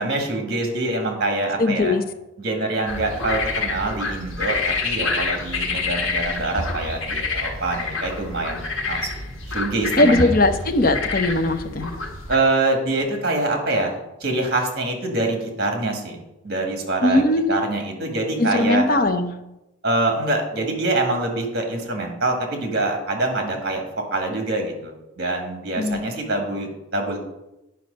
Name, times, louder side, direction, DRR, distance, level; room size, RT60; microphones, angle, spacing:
voice 1, 0.0-2.0 2.4-9.2 9.5-10.3 12.3-18.8 19.8-23.9 24.1-27.2, right 2 dB, 55° right, 3 dB, 1.9 m, -25 dB
voice 2, 1.6-2.0 10.0-12.0 17.0-17.6 18.4-19.3 25.8-26.0, left 2 dB, 45° left, 7 dB, 0.7 m, -19 dB
sound 1, 2.9-12.4, left 3 dB, 90° left, 1.3 m, -27 dB
9.2 x 5.5 x 5.3 m, 0.92 s
head